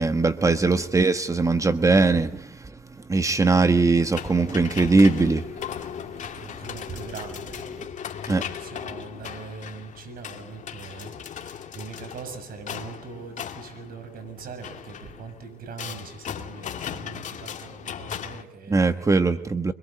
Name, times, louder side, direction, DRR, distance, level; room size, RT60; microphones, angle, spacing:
voice 1, 0.0-2.7 3.1-5.5 7.8-7.9 8.3-8.4 18.7-19.7, right 3 dB, 20° right, 10 dB, 1.3 m, -20 dB
sound 1, 3.9-18.4, left 8 dB, 45° left, 2.3 m, -37 dB
voice 2, 6.6-7.6 8.6-11.1 11.4-19.0, right 5 dB, 60° right, 8 dB, 7.0 m, -41 dB
25.5 x 22.0 x 8.7 m, 0.70 s
cardioid pair, 110°, 17 cm